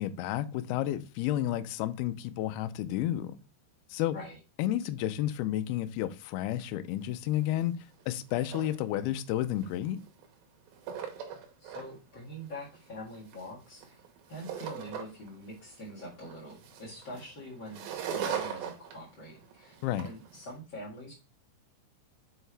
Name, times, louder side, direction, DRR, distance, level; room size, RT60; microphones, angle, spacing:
voice 1, 0.0-3.4 3.9-4.2 4.6-7.7 8.1-10.0 19.8-20.1, left 13 dB, 85° left, 2.2 m, -31 dB
sound 1, 7.0-7.1 7.3-7.6 8.0-8.9 9.6-10.3 10.7-11.9 12.3-15.4 15.7-20.5, right 8 dB, 70° right, 2.5 m, -40 dB
voice 2, 11.6-14.0 14.3-19.7 20.0-21.1, equal, 55° left, 1.3 m, -44 dB
6.7 x 4.6 x 3.3 m
omnidirectional pair, 5.2 m